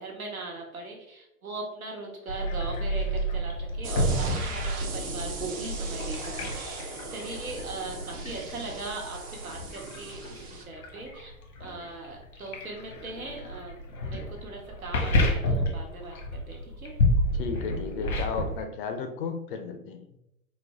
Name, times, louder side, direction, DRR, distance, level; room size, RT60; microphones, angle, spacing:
voice 1, 0.0-11.3 11.6-13.8 14.0-16.2 16.5-17.0, right 3 dB, 85° right, 0 dB, 1.1 m, -39 dB
sound 1, 2.3-18.6, left 1 dB, 85° left, 1.3 m, -30 dB
sound 2, 3.8-10.6, right 4 dB, 20° right, 0.5 m, -39 dB
voice 2, 17.3-20.2, left 5 dB, 40° left, 7 dB, 0.5 m, -34 dB
4.1 x 2.2 x 3.5 m, 0.84 s
figure-of-eight pair, 100°, 42 cm